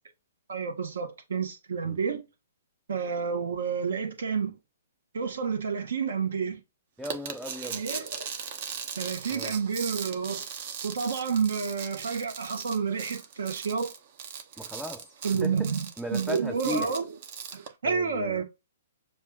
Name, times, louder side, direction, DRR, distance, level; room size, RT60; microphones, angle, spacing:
voice 1, 0.5-2.2 2.9-4.5 5.1-6.6 7.7-8.3 9.0-10.4 10.8-13.9 15.2-17.1 17.5-18.4, right 5 dB, 70° right, 1.2 m, -30 dB
voice 2, 7.0-7.8 9.3-9.5 14.6-15.1 15.4-15.7 16.0-16.9 17.8-18.4, equal, ahead, 0.4 m, -36 dB
sound 1, 7.0-17.7, right 7 dB, 50° right, 0.8 m, -39 dB
6.9 x 2.4 x 2.4 m
figure-of-eight pair, 125°, 0 cm